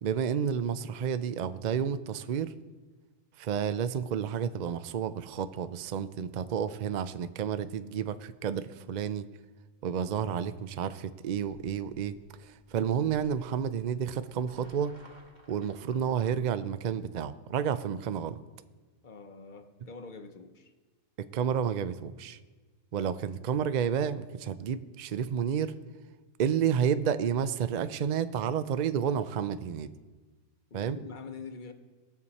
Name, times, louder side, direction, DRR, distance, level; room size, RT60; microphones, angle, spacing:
voice 1, 0.0-2.5 3.4-9.3 9.8-14.9 15.5-18.4 21.2-22.4 22.9-25.8 26.4-29.9 30.7-31.0, right 8 dB, 75° right, 12 dB, 0.4 m, -30 dB
sound 1, 11.3-16.4, right 1 dB, 35° right, 1.9 m, -58 dB
voice 2, 19.0-20.7 28.4-28.5 30.7-31.7, left 4 dB, 40° left, 7 dB, 0.9 m, -45 dB
20.0 x 7.1 x 4.1 m, 1.3 s
omnidirectional pair, 1.4 m